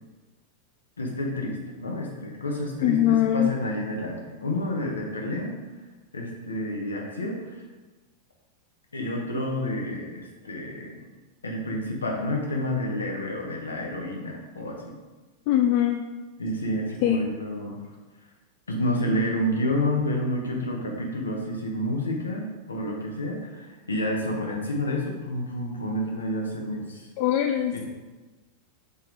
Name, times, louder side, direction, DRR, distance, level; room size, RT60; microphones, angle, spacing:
voice 1, 1.0-5.6 6.1-7.6 8.9-10.9 11.4-15.0 16.4-17.8 18.7-27.1 27.7-27.8, left 1 dB, 75° left, 0 dB, 1.1 m, -29 dB
voice 2, 2.8-3.5 15.5-16.0 17.0-17.2 27.2-27.8, left 12 dB, 45° left, 6 dB, 0.3 m, -22 dB
5.5 x 4.4 x 3.9 m, 1.2 s
figure-of-eight pair, 90°, 0 cm